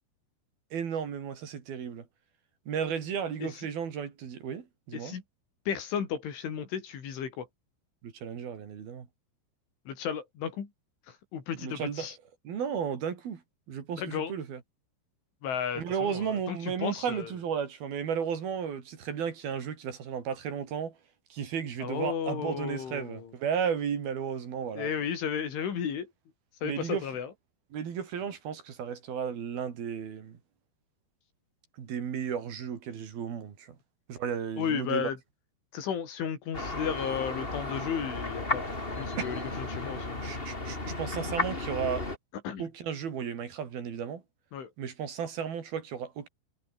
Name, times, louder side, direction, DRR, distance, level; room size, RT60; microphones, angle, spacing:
voice 1, 0.7-2.0 2.7-5.2 8.0-9.1 11.6-12.1 12.4-13.4 13.7-14.6 15.8-20.9 21.3-24.9 26.6-27.0 27.7-30.4 31.8-33.8 34.1-35.1 39.2-39.3 40.2-42.1 42.6-44.2 44.8-46.3, right 7 dB, 55° right, 4.5 m, -34 dB
voice 2, 4.9-5.2 5.7-7.5 9.9-10.7 11.1-12.2 14.0-14.3 15.4-17.3 21.8-23.3 24.7-26.1 26.6-27.3 34.6-35.2 35.7-38.6 39.0-40.2 42.4-42.7 44.5-44.7, left 8 dB, 85° left, 6.5 m, -34 dB
sound 1, 36.5-42.2, left 2 dB, 15° left, 3.1 m, -34 dB
omnidirectional pair, 5.4 m